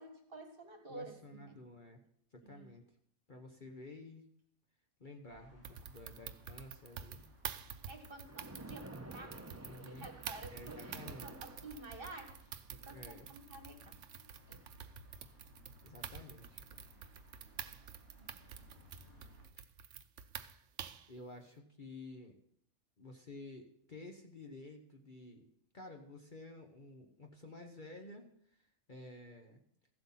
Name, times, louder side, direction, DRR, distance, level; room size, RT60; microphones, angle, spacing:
voice 1, 0.0-1.6 2.4-2.7 7.9-12.4 12.7-14.0 14.5-14.6 18.2-18.4, right 2 dB, 40° right, 4 dB, 1.8 m, -51 dB
voice 2, 0.9-2.0 2.3-2.8 3.3-4.2 5.0-7.2 9.6-10.1 10.4-11.3 12.9-13.3 15.8-16.8 21.1-22.4 23.0-25.5 25.7-28.2 28.5-29.6, left 2 dB, 40° left, 3 dB, 1.1 m, -52 dB
sound 1, 5.2-19.5, right 1 dB, 85° left, 7.6 m, -61 dB
sound 2, 5.6-21.1, right 8 dB, 65° right, 1.0 m, -48 dB
Splash splatter, 8.2-12.3, right 2 dB, 15° right, 0.6 m, -51 dB
15.0 x 7.9 x 5.7 m, 0.69 s
omnidirectional pair, 1.5 m